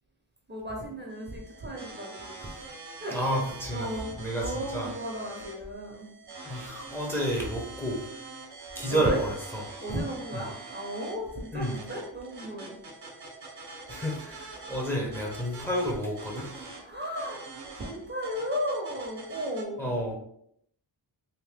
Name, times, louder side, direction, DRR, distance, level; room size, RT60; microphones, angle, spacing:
voice 1, 0.5-2.5 3.0-6.1 8.9-9.2 9.8-12.8 16.8-17.4 17.8-19.8, equal, 25° right, -1 dB, 0.8 m, -35 dB
sound 1, 1.1-19.6, right 3 dB, 60° right, 0.9 m, -45 dB
voice 2, 3.1-3.9 4.2-4.9 6.4-8.0 8.7-9.3 11.5-11.8 13.9-16.5 19.8-20.2, equal, 5° left, -2 dB, 0.8 m, -30 dB
2.8 x 2.7 x 3.5 m, 0.69 s
wide cardioid pair, 80°, 44 cm